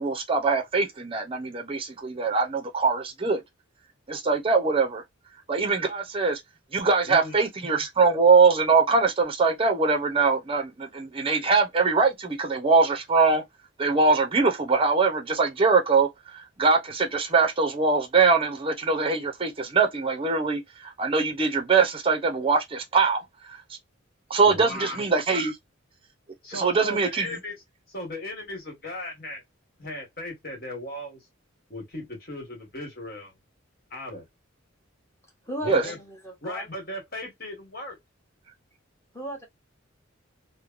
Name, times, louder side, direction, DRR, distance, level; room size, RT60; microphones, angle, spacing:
voice 1, 0.0-3.4 4.1-5.0 5.5-6.4 6.7-13.4 13.8-23.6 24.3-25.6 26.5-27.4 35.7-35.8, right 4 dB, 25° right, 0.6 m, -22 dB
voice 2, 7.1-7.4 24.4-25.0 26.4-27.6 27.9-29.4 29.8-31.2 31.7-33.3 33.9-34.2 35.6-36.0 36.4-38.0, left 1 dB, 50° left, 1.6 m, -37 dB
voice 3, 35.4-36.7 39.1-39.5, right 1 dB, 15° left, 1.1 m, -36 dB
3.1 x 2.1 x 2.5 m
head